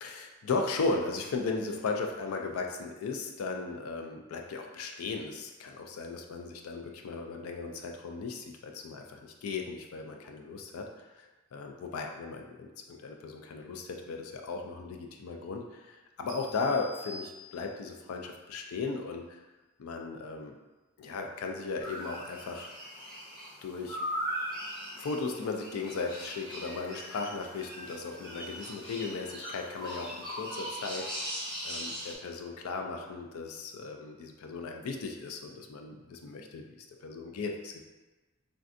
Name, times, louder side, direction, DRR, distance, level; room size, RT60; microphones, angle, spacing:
voice 1, 0.0-19.4 19.8-20.6 21.0-22.7 23.6-24.0 24.9-31.1 31.6-36.7 37.0-37.8, left 4 dB, 85° left, 3 dB, 0.4 m, -36 dB
sound 1, 16.3-18.0, left 1 dB, 50° right, 0.5 m, -47 dB
sound 2, 21.8-32.2, equal, 20° left, 0.7 m, -39 dB
3.3 x 2.5 x 2.5 m, 1.2 s
head